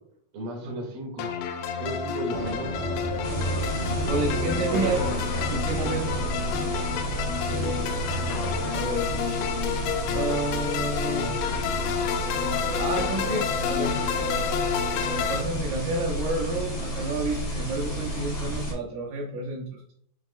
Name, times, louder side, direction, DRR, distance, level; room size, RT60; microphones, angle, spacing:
voice 1, 0.3-1.3 1.8-2.9 4.0-4.2 4.5-5.2 6.2-6.3 7.6-7.8, right 1 dB, 50° right, 0 dB, 1.9 m, -34 dB
sound 1, 1.2-15.4, left 7 dB, 85° left, 3.1 m, -29 dB
sound 2, 2.3-8.8, right 2 dB, 65° right, 2.7 m, -34 dB
sound 3, 3.2-18.7, equal, 30° left, 2.1 m, -32 dB
voice 2, 4.1-5.0 5.5-6.2 8.7-9.2 10.1-11.3 12.8-14.0 15.1-20.0, right 3 dB, 85° right, -1 dB, 1.9 m, -30 dB
12.5 x 4.8 x 2.3 m, 0.67 s
omnidirectional pair, 5.5 m